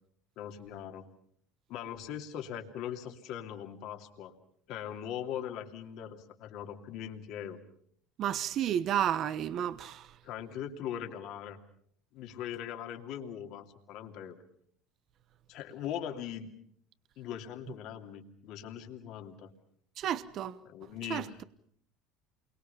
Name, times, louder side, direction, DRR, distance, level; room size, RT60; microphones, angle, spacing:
voice 1, 0.4-1.1 1.7-4.4 4.7-7.6 10.2-11.6 12.1-14.3 15.5-16.5 17.2-19.5 20.6-21.4, left 9 dB, 65° left, 2.8 m, -40 dB
voice 2, 8.2-10.0 20.0-20.6 21.1-21.4, right 10 dB, 50° right, 1.1 m, -31 dB
28.5 x 23.0 x 5.7 m
supercardioid pair, 90°, 0 cm